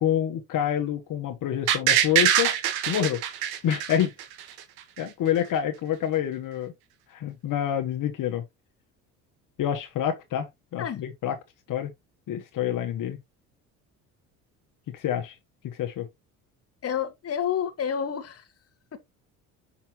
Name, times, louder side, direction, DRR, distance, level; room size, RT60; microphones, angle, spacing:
voice 1, 0.0-2.5 2.9-3.2 3.6-4.1 5.0-6.7 7.1-8.4 9.6-10.5 10.7-11.3 11.7-11.9 12.3-13.2 14.9-15.3 15.7-16.1, left 10 dB, 60° left, 1.3 m, -27 dB
sound 1, 1.7-4.6 5.0-5.1, right 10 dB, 75° right, 1.4 m, -23 dB
voice 2, 16.8-18.5 18.9-19.0, left 8 dB, 40° left, 1.4 m, -29 dB
5.9 x 5.7 x 2.9 m
supercardioid pair, 75°, 37 cm